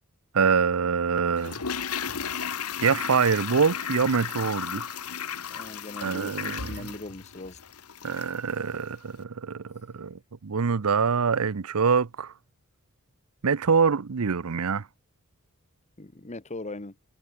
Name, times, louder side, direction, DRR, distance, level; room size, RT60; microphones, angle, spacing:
voice 1, 0.3-1.6 2.8-4.9 6.0-6.9 8.0-12.3 13.4-14.9, right 5 dB, 75° right, 0.7 m, -25 dB
Toilet flush, 1.4-8.5 8.7-8.8, left 7 dB, 90° left, 1.5 m, -34 dB
voice 2, 5.5-7.6 16.0-16.9, left 2 dB, 30° left, 1.4 m, -40 dB
head